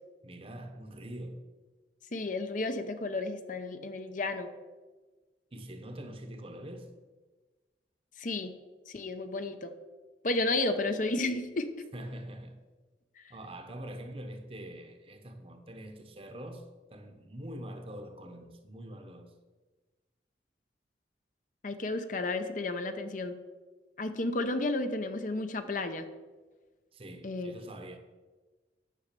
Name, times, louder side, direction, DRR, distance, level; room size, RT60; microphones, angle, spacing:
voice 1, 0.2-1.4 5.5-6.9 11.9-12.6 13.3-19.3 26.9-28.0, right 1 dB, 30° right, 1.0 m, -44 dB
voice 2, 2.1-4.5 8.2-8.5 8.9-9.7 10.2-11.7 13.2-13.3 21.6-23.4 24.0-26.1 27.2-27.5, left 2 dB, 45° left, 0.7 m, -32 dB
10.0 x 6.4 x 6.8 m
head